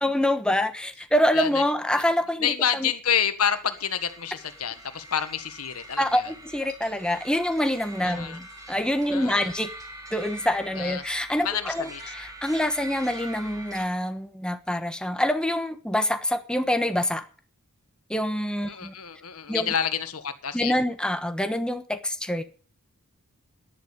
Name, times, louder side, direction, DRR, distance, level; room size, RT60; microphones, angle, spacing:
voice 1, 0.0-2.9 6.0-9.7 10.1-17.2 18.1-18.9 19.5-19.7 20.5-22.4, left 1 dB, 5° left, 1.1 m, -26 dB
voice 2, 2.4-6.2 8.0-8.4 9.1-9.5 10.8-11.0 11.4-12.0 18.7-20.7, left 8 dB, 90° left, 1.6 m, -28 dB
sound 1, 3.4-13.9, right 1 dB, 15° right, 3.3 m, -43 dB
11.0 x 11.0 x 7.2 m
head